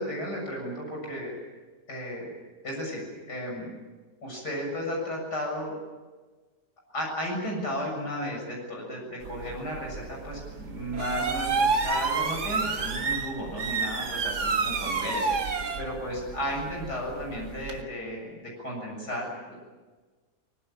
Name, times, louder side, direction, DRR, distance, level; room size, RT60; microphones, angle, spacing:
voice 1, 0.0-1.3 1.9-2.3 2.6-3.7 4.2-5.7 6.9-19.6, equal, 80° left, 0 dB, 7.8 m, -34 dB
sound 1, 9.2-17.8, right 4 dB, 80° right, 2.3 m, -30 dB
24.5 x 20.5 x 8.8 m, 1.3 s
omnidirectional pair, 1.7 m